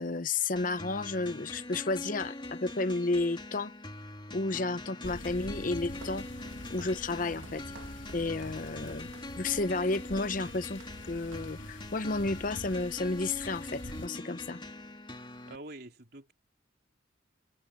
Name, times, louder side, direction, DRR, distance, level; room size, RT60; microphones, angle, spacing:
voice 1, 0.0-3.7 4.3-6.3 6.7-7.6 8.1-9.1 9.4-14.6, left 3 dB, 45° left, 0.8 m, -32 dB
sound 1, 0.6-15.6, left 1 dB, 25° left, 2.8 m, -43 dB
sound 2, 5.0-14.1, left 1 dB, 80° left, 3.7 m, -46 dB
Walk footsteps, 5.7-11.6 12.1-12.4 12.7-13.5, right 3 dB, 85° right, 1.7 m, -55 dB
voice 2, 15.5-16.3, right 2 dB, 55° right, 3.3 m, -46 dB
head